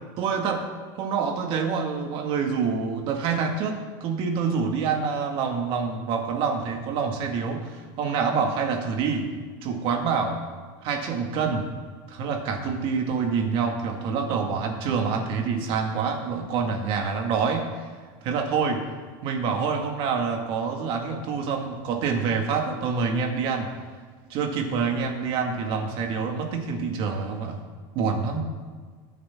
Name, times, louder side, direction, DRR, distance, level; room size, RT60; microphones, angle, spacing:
voice 1, 0.2-0.7 1.0-9.3 9.6-10.4 10.8-11.7 12.1-17.9 18.2-18.8 19.2-23.7 24.3-27.6 28.0-28.5, right 5 dB, 45° right, 3 dB, 2.0 m, -26 dB
20.0 x 9.8 x 3.7 m, 1.5 s
supercardioid pair, 150°, 12 cm